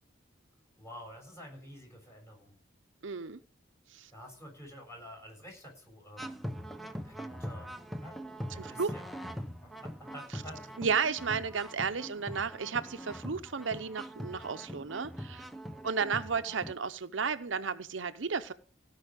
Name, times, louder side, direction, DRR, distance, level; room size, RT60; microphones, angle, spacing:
voice 1, 0.8-2.6 4.1-6.4 7.0-8.2 8.5-9.1 9.6-10.8, equal, 15° left, -1 dB, 7.0 m, -49 dB
voice 2, 3.0-3.4 3.9-4.1 8.6-8.9 10.3-10.4 10.8-15.5 15.8-18.5, right 5 dB, 85° right, 10 dB, 0.8 m, -33 dB
sound 1, 6.2-16.7, equal, ahead, 0.9 m, -42 dB
16.5 x 5.6 x 9.0 m, 0.44 s
head